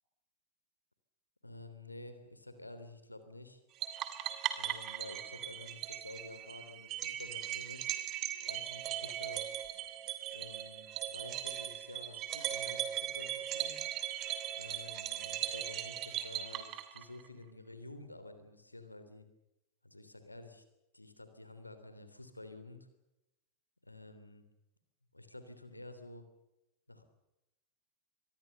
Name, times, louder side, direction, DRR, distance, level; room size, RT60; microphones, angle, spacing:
voice 1, 1.4-3.6 4.6-7.9 8.4-9.5 10.3-13.8 14.6-19.3 19.8-20.6 20.9-22.9 23.8-24.4 25.1-26.2 26.9-27.0, left 2 dB, 85° left, 9 dB, 3.3 m, -50 dB
sound 1, 3.8-17.3, right 11 dB, 35° right, 3.0 m, -39 dB
25.5 x 22.0 x 6.8 m, 0.92 s
figure-of-eight pair, 90°, 0 cm